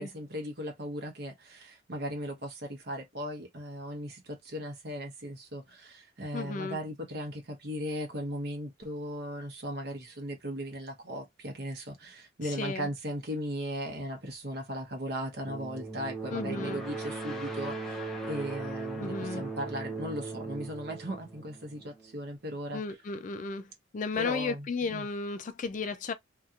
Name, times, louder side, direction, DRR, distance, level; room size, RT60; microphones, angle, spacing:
voice 1, 0.0-22.8 24.1-25.1, equal, 50° right, 1.0 m, -37 dB
voice 2, 6.3-6.8 12.4-12.9 16.3-16.8 19.0-19.4 22.7-26.1, left 4 dB, 40° left, 0.3 m, -34 dB
sound 1, 15.5-22.1, right 3 dB, ahead, 0.6 m, -38 dB
2.7 x 2.5 x 2.3 m
head